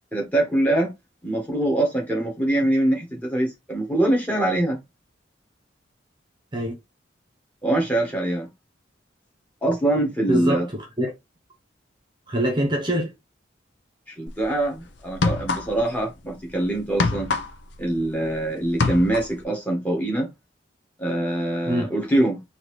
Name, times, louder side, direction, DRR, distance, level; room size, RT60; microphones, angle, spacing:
voice 1, 0.1-0.9 1.2-4.8 7.6-8.5 9.6-10.6 14.2-17.3 17.8-20.3 21.0-22.4, right 1 dB, 10° left, 1.5 m, -23 dB
voice 2, 10.3-11.1 12.3-13.1 21.7-21.9, right 1 dB, 25° right, 0.9 m, -24 dB
sound 1, 14.3-14.5 15.1-16.0 16.3-18.4 18.6-19.4, left 3 dB, 75° left, 0.7 m, -25 dB
4.2 x 2.8 x 3.1 m
head